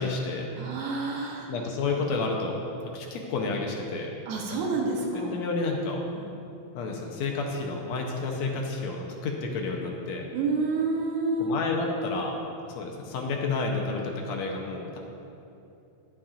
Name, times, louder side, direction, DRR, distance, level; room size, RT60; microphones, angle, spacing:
voice 1, 0.0-0.5 0.7-0.8 1.5-2.6 2.9-4.1 5.3-6.0 6.7-10.3 11.4-12.4 12.7-15.0, left 3 dB, 75° left, 0 dB, 1.9 m, -30 dB
voice 2, 0.5-1.5 4.3-5.4 6.2-6.3 10.3-11.5, right 3 dB, 80° right, -1 dB, 2.4 m, -29 dB
11.5 x 8.7 x 2.4 m, 2.8 s
omnidirectional pair, 3.4 m